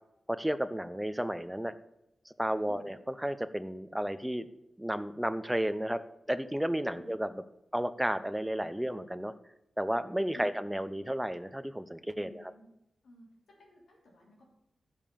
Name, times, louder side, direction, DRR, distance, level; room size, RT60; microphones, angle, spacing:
voice 1, 0.3-1.7 2.4-3.0 3.2-4.4 4.8-6.0 6.3-7.3 7.7-9.3 9.8-12.4, equal, 10° right, 13 dB, 0.6 m, -32 dB
voice 2, 2.5-2.9 6.8-7.1 10.3-10.6 12.1-12.7 13.0-13.3 13.6-14.5, left 1 dB, 90° left, -1 dB, 3.0 m, -53 dB
10.5 x 5.5 x 6.9 m, 0.87 s
cardioid pair, 55°, 0 cm